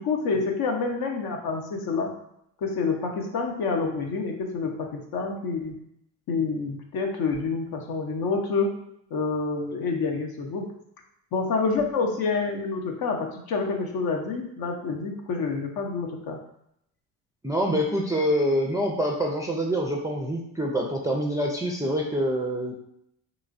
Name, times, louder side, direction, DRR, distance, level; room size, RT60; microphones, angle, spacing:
voice 1, 0.0-2.1 2.6-5.8 6.3-8.8 9.1-10.7 11.3-16.4, left 4 dB, 55° left, 2 dB, 0.7 m, -28 dB
voice 2, 17.4-22.7, equal, 10° right, -1 dB, 0.4 m, -26 dB
3.1 x 3.0 x 2.5 m, 0.75 s
hypercardioid pair, 60°, 44 cm